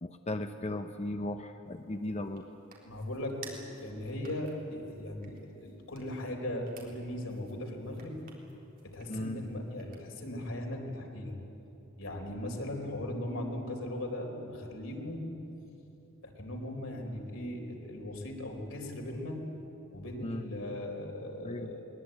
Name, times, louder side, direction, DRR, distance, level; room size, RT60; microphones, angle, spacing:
voice 1, 0.0-2.5 9.1-9.4 12.4-12.6 20.2-20.5 21.4-21.8, left 1 dB, 30° left, 7 dB, 0.8 m, -37 dB
sound 1, 1.7-10.4, right 5 dB, 45° right, 3.9 m, -56 dB
voice 2, 2.8-8.2 8.8-11.3 12.0-15.3 16.2-19.4 19.9-21.8, left 1 dB, 85° left, 2 dB, 4.1 m, -38 dB
22.0 x 20.5 x 8.9 m, 3.0 s
head